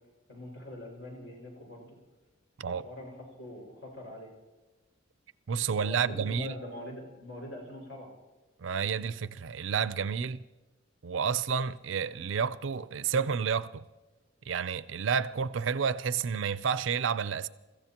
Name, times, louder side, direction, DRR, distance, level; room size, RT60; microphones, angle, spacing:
voice 1, 0.3-1.9 2.7-4.3 5.7-8.1, left 1 dB, 75° left, 5.6 m, -43 dB
voice 2, 5.5-6.5 8.6-10.4 11.0-13.8 14.5-17.5, right 6 dB, 65° right, 0.5 m, -30 dB
28.5 x 15.0 x 2.9 m
head